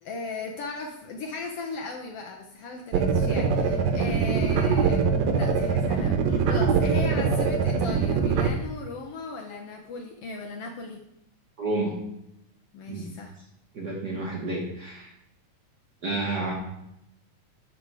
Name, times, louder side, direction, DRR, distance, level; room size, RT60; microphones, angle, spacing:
voice 1, 0.0-5.0 5.3-11.0 12.7-13.4, left 3 dB, 65° left, 2 dB, 1.6 m, -37 dB
sound 1, 2.9-8.5, right 5 dB, 70° right, 1.9 m, -23 dB
voice 2, 11.6-12.0 12.9-13.1 13.7-15.1 16.0-16.5, right 2 dB, 50° right, -2 dB, 1.3 m, -30 dB
12.0 x 5.3 x 4.8 m, 0.83 s
omnidirectional pair, 3.4 m